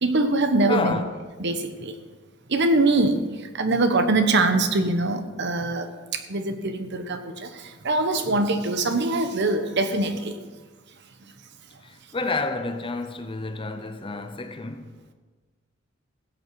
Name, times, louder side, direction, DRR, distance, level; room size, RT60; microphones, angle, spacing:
voice 1, 0.0-1.0 1.4-2.0 2.5-3.2 3.5-5.9 6.1-10.4, right 2 dB, 55° right, 1.0 m, -23 dB
voice 2, 0.7-1.2 11.8-15.0, left 3 dB, 25° left, 0.7 m, -30 dB
16.0 x 8.4 x 4.6 m
head